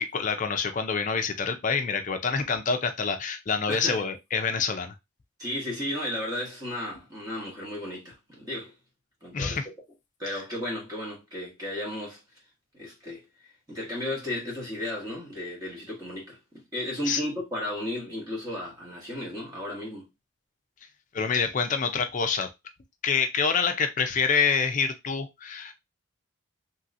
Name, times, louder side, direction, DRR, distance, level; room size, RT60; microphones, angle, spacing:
voice 1, 0.0-4.9 9.3-9.7 10.3-10.4 17.1-17.2 21.1-22.5 23.0-25.7, left 5 dB, 35° left, 0.4 m, -26 dB
voice 2, 3.7-4.0 5.4-8.7 9.2-9.6 10.2-12.2 12.8-13.2 13.7-20.1, left 1 dB, 20° right, 1.1 m, -34 dB
3.0 x 2.8 x 2.5 m
head